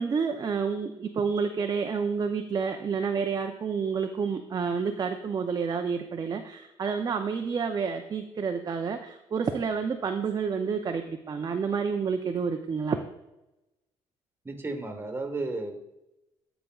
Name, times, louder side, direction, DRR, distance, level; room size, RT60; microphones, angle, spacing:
voice 1, 0.0-13.0, right 5 dB, 35° right, 6 dB, 0.6 m, -29 dB
voice 2, 14.4-15.7, right 2 dB, 20° right, 6 dB, 1.4 m, -33 dB
12.5 x 5.0 x 2.4 m, 0.92 s
supercardioid pair, 80°, 12 cm